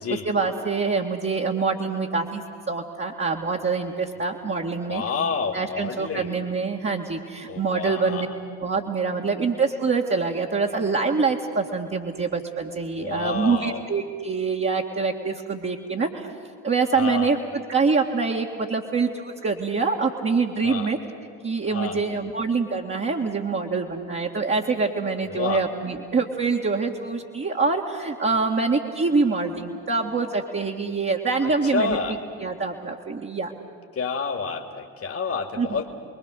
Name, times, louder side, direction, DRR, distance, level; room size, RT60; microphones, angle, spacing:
voice 1, 0.1-5.0 5.5-8.3 8.6-16.3 16.6-21.0 21.4-32.0 32.4-33.5 35.6-35.8, right 4 dB, 25° right, -1 dB, 2.1 m, -25 dB
voice 2, 4.9-6.4 7.5-8.3 12.9-13.8 16.9-17.3 20.6-20.9 21.6-22.0 25.3-25.6 31.4-32.2 33.9-35.9, left 5 dB, 30° left, 3 dB, 2.3 m, -29 dB
30.0 x 22.0 x 6.6 m, 2.1 s
figure-of-eight pair, 55°, 46 cm